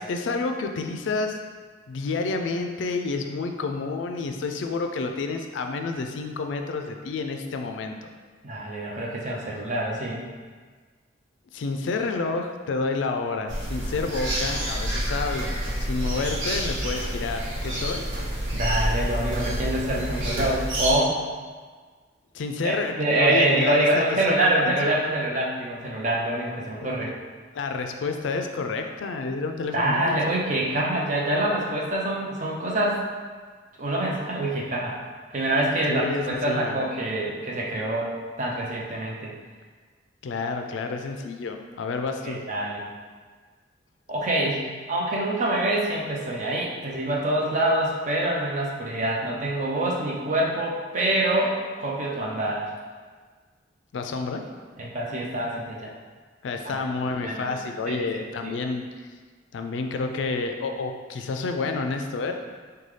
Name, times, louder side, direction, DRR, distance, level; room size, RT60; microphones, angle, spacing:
voice 1, 0.0-1.4 1.9-8.1 11.5-15.5 15.8-18.0 22.3-25.1 27.5-30.1 35.9-36.8 40.2-42.4 53.9-54.4 56.4-58.9 59.5-62.3, left 3 dB, 80° left, 5 dB, 0.4 m, -29 dB
voice 2, 8.4-10.3 18.5-21.2 22.6-27.1 29.7-33.0 33.8-34.9 35.3-38.1 38.4-39.3 42.2-42.8 44.1-44.6 44.9-51.5 51.8-52.7 54.8-55.9 56.7-56.9 57.2-58.5, right 1 dB, 45° right, -3 dB, 0.7 m, -25 dB
sound 1, 13.5-20.9, right 1 dB, 80° right, 0.9 m, -28 dB
5.3 x 2.2 x 3.2 m, 1.5 s
head